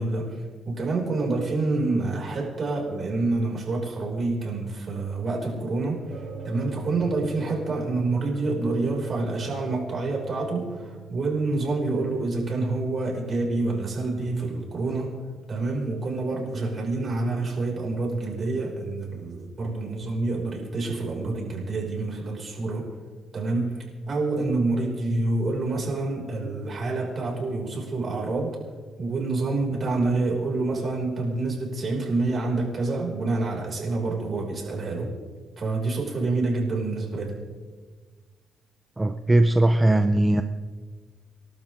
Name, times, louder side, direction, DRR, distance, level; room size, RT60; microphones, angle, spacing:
voice 1, 0.0-6.0 6.4-15.2 15.5-22.9 23.3-28.6 29.0-35.1 35.6-37.4, right 3 dB, 45° right, -1 dB, 6.1 m, -27 dB
sound 1, 6.1-15.2, right 4 dB, 65° right, 3.2 m, -43 dB
voice 2, 39.0-40.4, right 1 dB, 15° right, 7 dB, 0.8 m, -19 dB
28.5 x 12.0 x 3.8 m, 1.4 s
cardioid pair, 90°, 0 cm